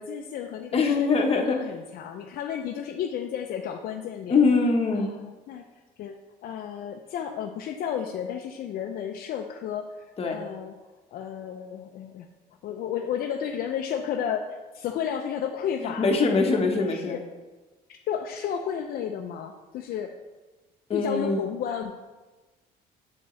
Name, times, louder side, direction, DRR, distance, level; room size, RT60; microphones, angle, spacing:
voice 1, 0.0-4.3 4.9-5.6 6.0-10.7 11.1-12.3 12.6-16.1 16.5-17.2 18.1-20.1 20.9-21.9, left 8 dB, 65° left, 4 dB, 0.4 m, -32 dB
voice 2, 0.7-1.6 4.3-5.1 10.2-10.4 15.8-17.2 20.9-21.4, left 4 dB, 35° left, 2 dB, 0.9 m, -23 dB
7.8 x 4.5 x 3.1 m, 1.2 s
cardioid pair, 110°, 17 cm